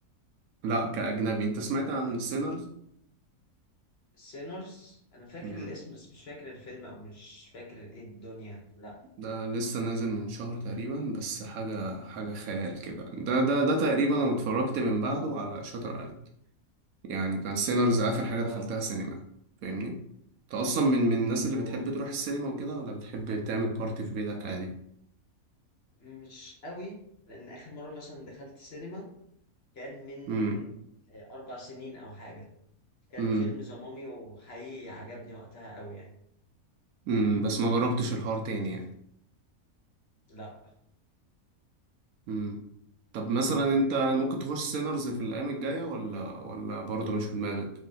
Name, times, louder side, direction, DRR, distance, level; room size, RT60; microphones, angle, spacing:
voice 1, 0.6-2.7 5.4-5.7 9.2-16.1 17.0-19.2 19.6-20.0 20.5-24.7 30.3-30.6 33.2-33.5 37.1-38.9 42.3-42.6 43.1-47.7, right 2 dB, 75° right, 3 dB, 1.1 m, -29 dB
voice 2, 4.1-9.0 18.4-18.7 21.5-21.8 26.0-27.0 27.3-29.1 29.7-30.7 31.1-32.4 33.1-36.1 40.3-40.5, left 1 dB, 50° left, -2 dB, 1.0 m, -44 dB
3.2 x 2.7 x 3.8 m, 0.71 s
omnidirectional pair, 1.6 m